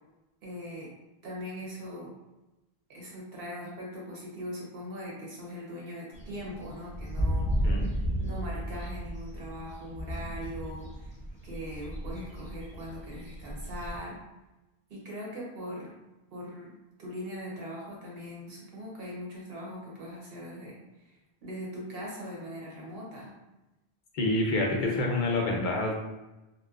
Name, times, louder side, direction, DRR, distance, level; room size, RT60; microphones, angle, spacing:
voice 1, 0.4-0.9 1.2-2.2 2.9-7.9 8.2-11.1 11.4-14.2 14.9-15.9 16.3-16.7 17.0-21.1 21.4-23.3, equal, 65° right, -3 dB, 1.0 m, -40 dB
sound 1, 6.1-14.0, equal, 10° left, 0.4 m, -34 dB
voice 2, 24.1-25.9, left 2 dB, 60° left, -1 dB, 0.6 m, -27 dB
2.7 x 2.2 x 2.3 m, 1.0 s
omnidirectional pair, 1.1 m